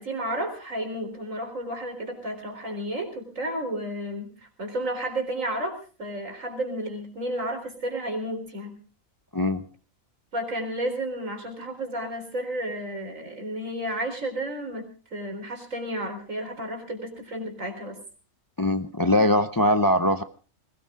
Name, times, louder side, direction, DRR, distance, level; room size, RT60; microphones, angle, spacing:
voice 1, 0.0-4.3 4.6-5.7 6.0-8.8 10.3-14.9 15.1-18.0, right 1 dB, 75° right, 4 dB, 4.4 m, -32 dB
voice 2, 18.6-20.2, left 1 dB, 20° left, 10 dB, 0.6 m, -21 dB
20.5 x 18.0 x 3.7 m, 0.37 s
omnidirectional pair, 1.4 m